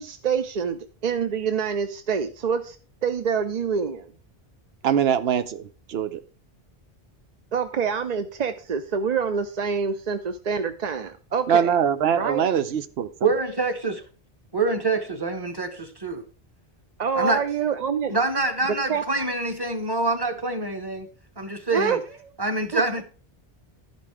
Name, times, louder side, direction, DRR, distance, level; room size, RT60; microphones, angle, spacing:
voice 1, 0.0-2.8 3.0-4.1 7.5-11.7 12.2-12.5 17.0-18.2 18.9-19.0 21.7-22.0 22.7-22.8, right 6 dB, 50° right, 0.6 m, -26 dB
voice 2, 4.8-6.2 11.5-13.1, right 8 dB, 85° right, 0.9 m, -23 dB
voice 3, 13.2-14.0 14.5-16.2 17.1-17.4 18.1-21.1 21.4-22.0 22.4-23.0, right 3 dB, 25° right, 1.3 m, -26 dB
12.0 x 5.4 x 4.7 m
omnidirectional pair, 1.0 m